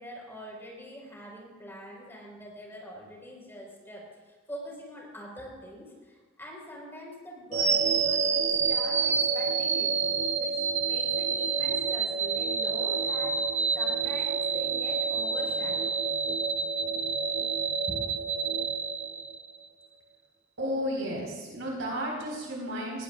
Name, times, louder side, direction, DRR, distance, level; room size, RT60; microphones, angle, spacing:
voice 1, 0.0-13.4 13.7-16.0 17.9-18.0, equal, 10° left, -3 dB, 4.6 m, -44 dB
sound 1, 7.5-19.6, right 5 dB, 35° right, 0.8 m, -28 dB
voice 2, 20.6-23.0, equal, 80° right, -2 dB, 4.4 m, -33 dB
20.0 x 16.5 x 2.5 m, 1.4 s
head